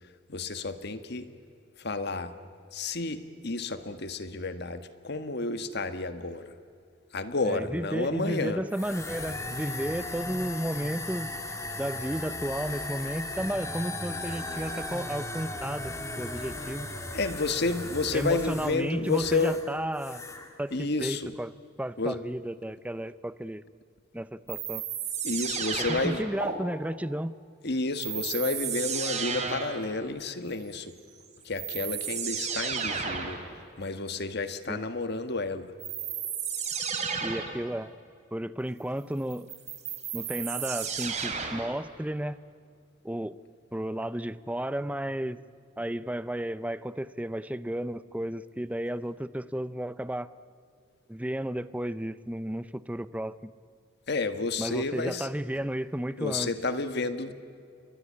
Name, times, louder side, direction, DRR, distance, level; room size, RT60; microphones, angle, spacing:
voice 1, 0.3-1.3 1.8-2.3 2.7-6.5 7.1-8.6 17.1-19.6 20.7-21.3 22.0-22.2 25.2-26.2 27.6-30.9 31.4-35.7 54.1-55.3 56.2-57.3, left 3 dB, 55° left, 9 dB, 1.6 m, -31 dB
voice 2, 7.4-11.3 11.8-16.9 18.1-20.2 20.6-21.5 21.8-23.6 24.1-24.8 25.9-27.4 34.7-34.8 37.2-37.9 38.3-39.5 40.1-42.4 43.0-43.4 43.7-45.4 45.8-50.3 51.1-53.5 54.6-56.5, right 1 dB, 5° right, 15 dB, 0.6 m, -33 dB
sound 1, 8.7-19.7 20.0-20.5, left 2 dB, 15° left, 2.4 m, -37 dB
sound 2, 24.5-26.5 28.0-29.8 31.1-31.2 31.6-33.4 35.8-37.6 39.3-41.7, right 6 dB, 35° right, 3.5 m, -33 dB
29.0 x 22.5 x 8.6 m, 2.4 s
head